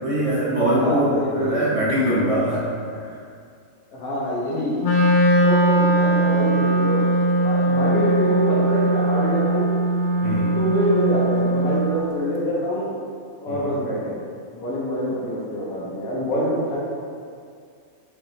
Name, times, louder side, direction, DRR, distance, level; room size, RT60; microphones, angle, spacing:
voice 1, 0.0-2.6 2.9-3.0 10.2-10.6 13.5-13.6, right 1 dB, 40° right, -9 dB, 0.5 m, -22 dB
voice 2, 0.7-1.7 3.9-4.8 5.4-7.1 7.4-9.7 10.5-13.0 13.4-14.2 14.5-16.8, equal, 90° left, -7 dB, 1.2 m, -25 dB
Wind instrument woodwind instrument, 4.8-12.0, right 1 dB, 70° left, 0.4 m, -20 dB
5.1 x 2.6 x 3.0 m, 2.3 s
omnidirectional pair, 1.5 m